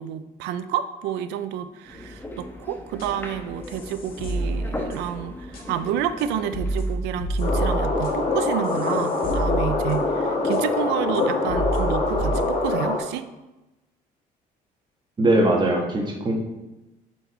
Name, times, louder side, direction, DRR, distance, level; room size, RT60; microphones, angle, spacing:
voice 1, 0.0-13.3, right 9 dB, 90° right, 12 dB, 0.5 m, -29 dB
sound 1, 1.9-6.9, left 1 dB, 10° left, 1.1 m, -37 dB
sound 2, 2.9-3.3 3.6-5.2 5.5-5.6 6.2-6.3 6.5-10.2 10.5-10.6 11.1-11.2 11.5-12.4, right 2 dB, 60° left, 1.8 m, -29 dB
sound 3, 7.4-13.0, left 3 dB, 40° left, 1.7 m, -24 dB
voice 2, 15.2-16.3, right 1 dB, 25° right, 0 dB, 1.5 m, -20 dB
8.0 x 4.7 x 4.3 m, 1.0 s
cardioid pair, 110°, 17 cm